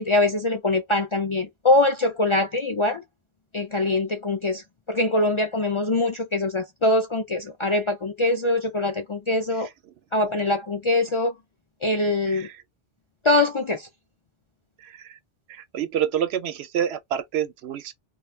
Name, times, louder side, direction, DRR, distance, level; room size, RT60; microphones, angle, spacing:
voice 1, 0.0-3.0 3.5-4.6 4.9-9.7 10.1-11.3 11.8-12.5 13.2-13.9, left 2 dB, 50° left, 0.3 m, -23 dB
voice 2, 14.8-15.2 15.5-17.9, right 9 dB, 85° right, 0.8 m, -28 dB
2.3 x 2.2 x 3.1 m
omnidirectional pair, 1.0 m